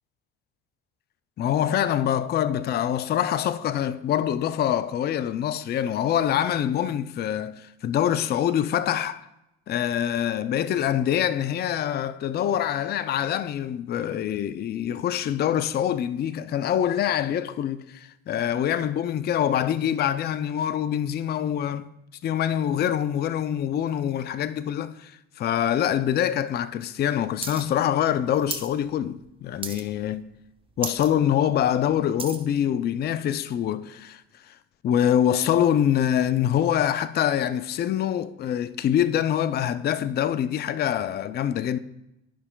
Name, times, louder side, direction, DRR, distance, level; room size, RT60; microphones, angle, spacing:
voice 1, 1.4-9.2 9.7-21.9 22.2-30.2 30.8-34.2 34.5-34.6 34.8-41.8, left 10 dB, 30° left, 0.4 m, -25 dB
sound 1, 27.4-27.6 27.9-28.7 29.1-29.3 29.6-30.1 30.4-30.5 30.7-31.1 31.5-32.5 33.1-33.2, right 4 dB, 15° right, 0.8 m, -34 dB
13.0 x 5.4 x 2.3 m
supercardioid pair, 85°, 33 cm